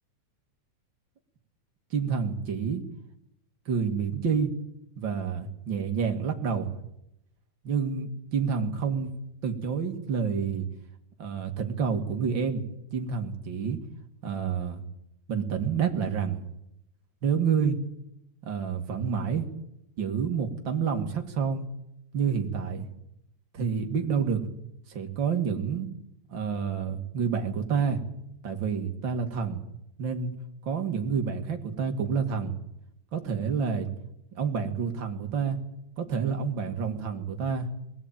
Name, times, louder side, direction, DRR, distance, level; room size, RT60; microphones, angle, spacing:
voice 1, 1.9-2.8 3.7-4.5 5.0-6.7 7.6-9.1 9.4-10.7 11.2-12.6 12.9-13.8 14.2-14.8 15.3-16.4 17.2-17.8 18.4-19.5 20.0-21.6 22.1-22.8 23.5-24.4 24.9-25.9 26.3-28.0 28.4-29.6 30.0-30.3 30.6-32.5 33.1-33.9 34.3-35.6 36.0-37.7, right 6 dB, 40° right, 5 dB, 2.3 m, -28 dB
21.0 x 15.5 x 8.9 m, 0.82 s
omnidirectional pair, 3.6 m